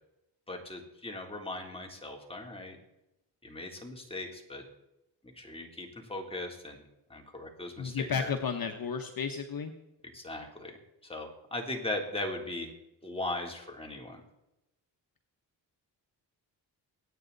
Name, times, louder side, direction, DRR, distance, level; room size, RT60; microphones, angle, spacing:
voice 1, 0.5-2.8 3.4-4.6 5.4-6.8 7.1-8.3 10.1-10.8 11.0-12.7 13.0-14.2, left 2 dB, 15° left, 1 dB, 3.5 m, -38 dB
voice 2, 7.8-9.7, left 6 dB, 55° left, 5 dB, 1.3 m, -33 dB
23.5 x 9.2 x 4.1 m, 0.91 s
cardioid pair, 80°, 43 cm